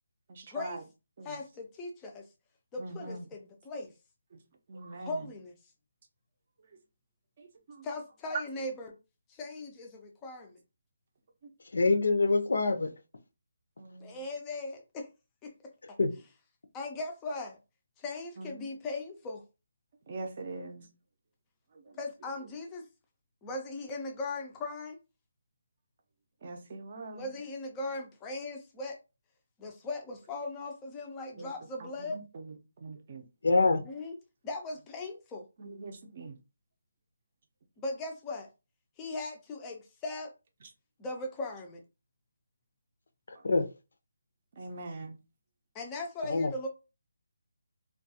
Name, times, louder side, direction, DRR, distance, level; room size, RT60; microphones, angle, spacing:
voice 1, 0.3-0.8 1.2-1.3 2.8-3.3 4.7-5.2 7.4-7.8 13.8-14.2 18.4-18.6 20.1-20.8 26.4-27.2 31.4-31.5 31.8-33.2 35.6-36.3 44.6-45.2, right 3 dB, 35° right, 0.5 m, -43 dB
voice 2, 1.2-2.2 2.7-3.9 5.0-5.5 7.8-8.9 9.3-10.6 14.0-15.1 15.4-15.5 15.9-16.0 16.7-17.6 18.0-19.4 22.0-22.8 23.4-25.0 27.1-29.0 29.6-32.2 33.8-34.2 34.4-35.4 37.8-38.5 39.0-40.3 41.0-41.8 45.7-46.7, left 2 dB, 10° left, 0.4 m, -38 dB
voice 3, 11.7-12.9 16.0-16.1 33.4-33.8 43.4-43.7 46.3-46.5, left 3 dB, 70° left, 0.5 m, -24 dB
2.2 x 2.2 x 2.7 m
hypercardioid pair, 170°, 0 cm